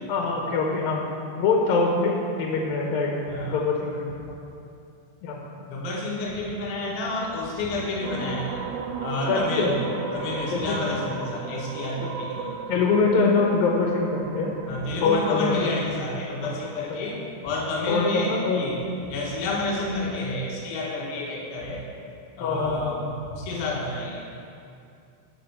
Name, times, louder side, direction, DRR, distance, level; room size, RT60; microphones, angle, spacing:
voice 1, 0.1-1.0 1.4-2.1 2.4-3.1 3.4-4.0 5.2-5.5 9.3-9.7 10.5-10.8 12.0-12.1 12.7-14.5 15.0-15.6 17.0-17.1 17.9-18.6 22.4-23.0, left 4 dB, 65° left, -1 dB, 2.6 m, -24 dB
voice 2, 3.3-3.7 5.7-8.7 9.0-9.8 10.1-12.6 14.7-18.8 19.1-21.8 22.4-24.3, left 2 dB, 90° left, -3 dB, 3.9 m, -30 dB
sound 1, 8.0-16.5, right 6 dB, 75° right, 2.8 m, -35 dB
15.0 x 5.6 x 6.8 m, 2.5 s
omnidirectional pair, 5.2 m